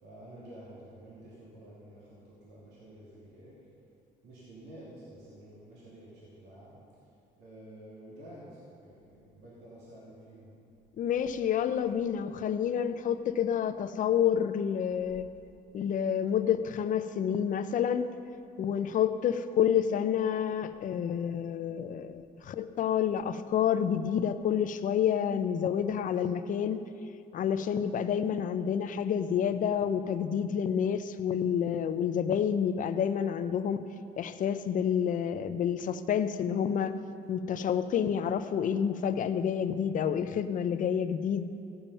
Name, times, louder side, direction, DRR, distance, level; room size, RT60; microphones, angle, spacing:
voice 1, 0.0-3.5 4.2-6.8 7.4-10.5 37.6-37.7, right 1 dB, 80° right, -7 dB, 3.0 m, -50 dB
voice 2, 11.0-15.3 15.7-18.1 18.6-26.8 27.3-33.8 34.2-36.9 37.3-41.4, left 8 dB, 50° left, 11 dB, 0.6 m, -29 dB
16.0 x 7.2 x 5.6 m, 2.5 s
cardioid pair, 110°, 17 cm